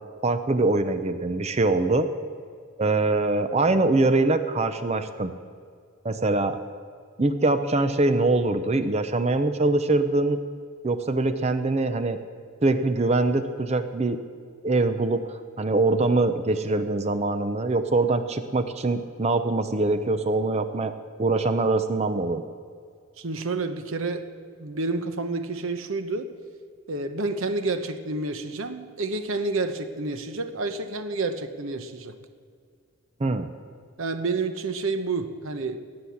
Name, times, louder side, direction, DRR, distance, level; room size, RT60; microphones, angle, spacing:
voice 1, 0.2-2.1 2.8-5.3 6.0-6.6 7.2-10.4 10.8-12.2 12.6-14.2 14.6-20.9 21.2-22.4 33.2-33.5, right 2 dB, 30° right, 10 dB, 0.5 m, -23 dB
voice 2, 23.2-24.3 24.6-26.3 26.9-32.2 34.0-35.8, right 3 dB, 65° right, 8 dB, 0.9 m, -29 dB
18.0 x 7.9 x 7.1 m, 2.1 s
head